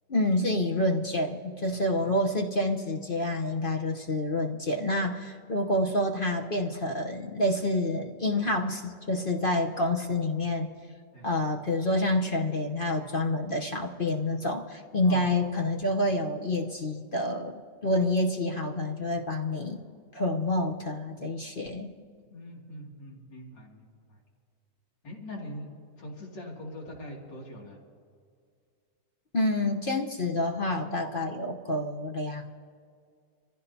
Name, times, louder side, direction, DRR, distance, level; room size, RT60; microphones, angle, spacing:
voice 1, 0.1-10.7 11.2-19.8 20.1-21.9 29.3-32.5, left 1 dB, 40° left, 2 dB, 0.8 m, -28 dB
voice 2, 22.3-24.2 25.0-25.7 26.0-27.8, equal, 75° left, -2 dB, 3.2 m, -42 dB
26.0 x 15.0 x 2.8 m, 2.2 s
omnidirectional pair, 1.9 m